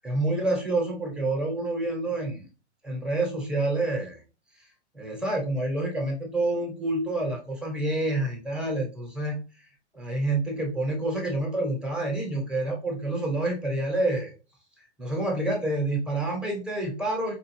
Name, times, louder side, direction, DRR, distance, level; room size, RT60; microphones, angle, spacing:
voice 1, 0.0-2.4 2.8-4.2 4.9-9.4 9.9-14.3 15.0-17.3, right 2 dB, ahead, 0 dB, 1.0 m, -28 dB
4.4 x 2.2 x 3.2 m, 0.33 s
figure-of-eight pair, 110°, 35 cm